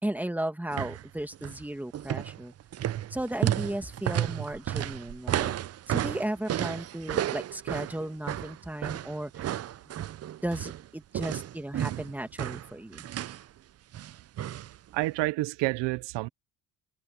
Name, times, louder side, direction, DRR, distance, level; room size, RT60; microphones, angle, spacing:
voice 1, 0.0-2.5 3.1-5.6 5.9-9.5 10.4-13.1, right 1 dB, 5° right, 1.9 m, -35 dB
sound 1, 0.7-1.1 1.3-1.6 1.9-10.9 11.1-13.4 13.9-14.8 15.0-15.1, right 12 dB, 35° right, 0.5 m, -32 dB
voice 2, 14.9-16.3, right 20 dB, 90° right, 0.7 m, -29 dB
cardioid pair, 115°, 42 cm